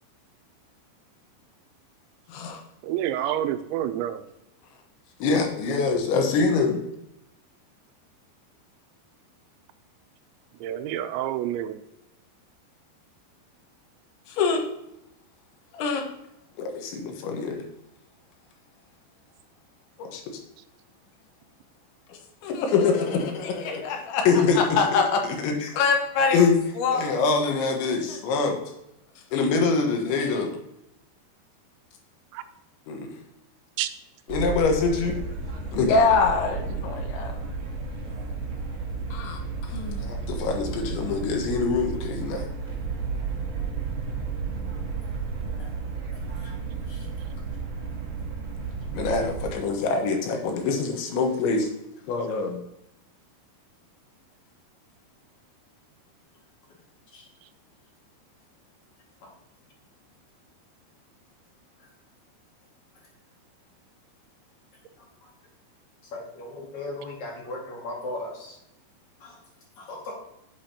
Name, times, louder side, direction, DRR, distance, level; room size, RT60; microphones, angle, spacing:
voice 1, 2.3-2.6 5.2-6.8 14.3-14.7 15.7-16.1 16.6-17.7 20.0-20.4 22.1-28.6 29.3-30.5 32.9-33.1 34.3-35.2 35.7-37.4 39.1-42.5 49.0-51.7 52.1-52.6, left 4 dB, 85° left, 3 dB, 3.5 m, -24 dB
voice 2, 2.8-4.2 10.6-11.8 32.3-32.4 33.8-33.9, right 11 dB, 85° right, 10 dB, 2.9 m, -28 dB
sound 1, 34.3-49.5, right 4 dB, 65° right, 1.5 m, -32 dB
voice 3, 46.2-46.6 46.9-47.1 57.1-57.2 59.2-59.3 61.8-61.9 65.0-65.3 66.1-68.6 69.2-69.4 69.8-70.1, left 2 dB, 50° left, -2 dB, 2.7 m, -38 dB
8.5 x 8.4 x 2.9 m, 0.85 s
omnidirectional pair, 5.2 m